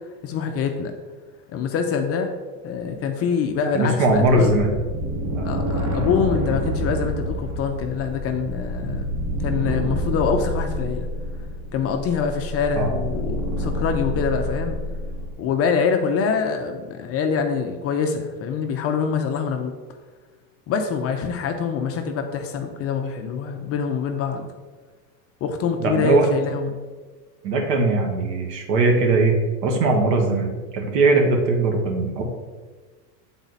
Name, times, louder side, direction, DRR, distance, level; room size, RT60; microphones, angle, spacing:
voice 1, 0.2-1.0 1.5-2.3 2.6-4.5 5.4-9.1 9.4-11.1 11.7-14.8 15.4-19.7 20.7-24.5 25.4-26.8, left 6 dB, 30° left, 5 dB, 0.5 m, -25 dB
voice 2, 3.7-4.7 5.3-5.5 12.7-12.9 25.8-26.3 27.4-32.2, right 2 dB, 70° right, 2 dB, 1.6 m, -20 dB
sound 1, 4.1-15.3, equal, 35° right, 1.1 m, -28 dB
8.0 x 4.0 x 4.0 m, 1.4 s
supercardioid pair, 125°, 49 cm